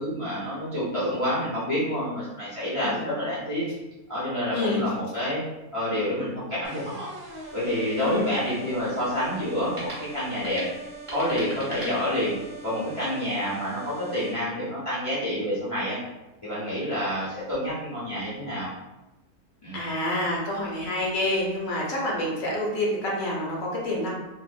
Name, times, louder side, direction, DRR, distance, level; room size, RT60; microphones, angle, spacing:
voice 1, 0.0-3.7 4.1-5.4 5.7-7.1 7.5-10.6 11.1-12.3 12.6-16.0 16.4-18.7 19.6-19.8, equal, 40° left, -11 dB, 0.5 m, -28 dB
voice 2, 4.5-4.9 8.0-8.4 19.7-24.1, left 1 dB, 70° left, -4 dB, 1.0 m, -27 dB
sound 1, 6.6-14.3, right 3 dB, 65° right, 1.0 m, -42 dB
sound 2, 7.3-12.6, right 1 dB, 35° right, 0.5 m, -43 dB
2.6 x 2.1 x 2.4 m, 1.0 s
omnidirectional pair, 1.6 m